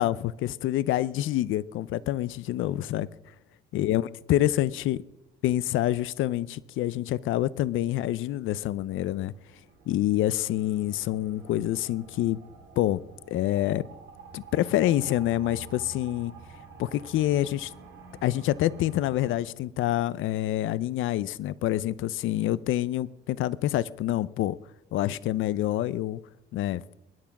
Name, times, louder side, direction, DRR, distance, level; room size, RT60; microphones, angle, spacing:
voice 1, 0.0-3.1 3.7-5.0 5.4-9.3 9.9-12.4 12.8-13.0 13.3-13.9 14.3-16.3 16.8-17.7 18.2-24.6 24.9-26.2 26.5-26.8, left 14 dB, 85° left, 0.6 m, -27 dB
sound 1, 8.7-19.4, right 5 dB, 75° right, 3.2 m, -49 dB
22.5 x 10.0 x 5.9 m
cardioid pair, 90°, 20 cm